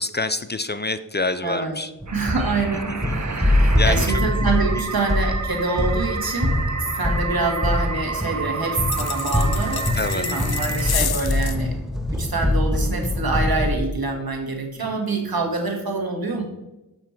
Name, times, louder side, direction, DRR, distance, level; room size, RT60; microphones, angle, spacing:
voice 1, 0.0-1.9 3.1-3.2 3.8-4.2 10.0-10.3 14.8-15.0, left 3 dB, 30° left, 12 dB, 0.4 m, -26 dB
voice 2, 1.4-1.8 2.1-11.7 12.1-16.4, right 3 dB, 75° right, 2 dB, 1.8 m, -26 dB
sound 1, 2.0-13.8, left 1 dB, ahead, 0.7 m, -23 dB
sound 2, 2.1-11.0, right 4 dB, 50° right, 1.0 m, -31 dB
sound 3, 8.9-11.6, left 8 dB, 85° left, 0.6 m, -30 dB
7.2 x 6.4 x 4.5 m, 0.96 s
wide cardioid pair, 50°, 36 cm